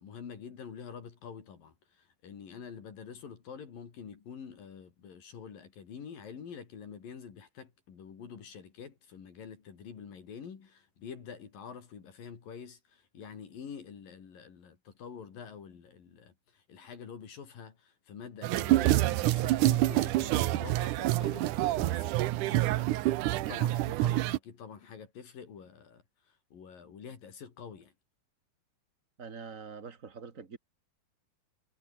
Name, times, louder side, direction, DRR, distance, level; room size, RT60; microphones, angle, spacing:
voice 1, 0.0-27.9, left 7 dB, 70° left, 5.0 m, -47 dB
sound 1, 18.4-24.4, right 16 dB, 75° right, 2.0 m, -27 dB
voice 2, 29.2-30.6, right 5 dB, 25° right, 1.9 m, -44 dB
omnidirectional pair, 4.2 m